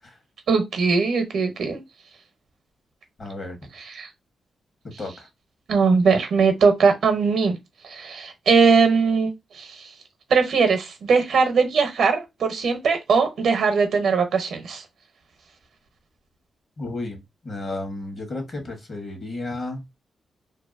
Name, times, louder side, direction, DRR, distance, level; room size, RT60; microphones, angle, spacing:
voice 1, 0.5-1.8 3.8-4.1 5.7-7.6 7.9-9.3 9.6-9.8 10.3-14.8, right 5 dB, 75° right, 0.7 m, -20 dB
voice 2, 3.2-3.6 5.0-5.3 16.8-19.8, left 2 dB, 50° left, 1.2 m, -33 dB
2.7 x 2.2 x 2.5 m
cardioid pair, 60°, 0 cm